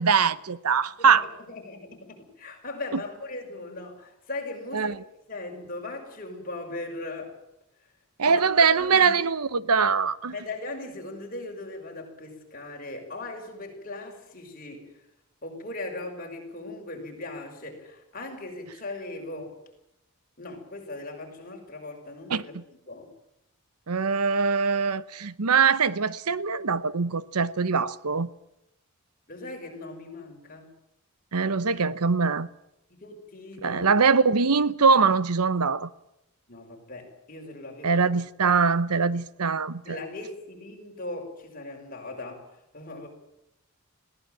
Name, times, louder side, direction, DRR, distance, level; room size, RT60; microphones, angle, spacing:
voice 1, 0.0-1.2 2.9-3.0 4.7-5.0 8.2-10.3 22.3-22.6 23.9-28.3 31.3-32.5 33.6-35.9 37.8-40.0, right 5 dB, 90° right, 1.0 m, -23 dB
voice 2, 1.0-4.9 5.3-7.3 8.2-8.4 8.8-9.1 10.3-15.0 15.4-19.6 20.4-22.5 22.9-23.1 29.3-30.7 32.9-33.9 36.5-38.1 39.8-42.5 42.7-43.1, left 2 dB, 40° left, 5.9 m, -39 dB
21.5 x 17.0 x 9.1 m
head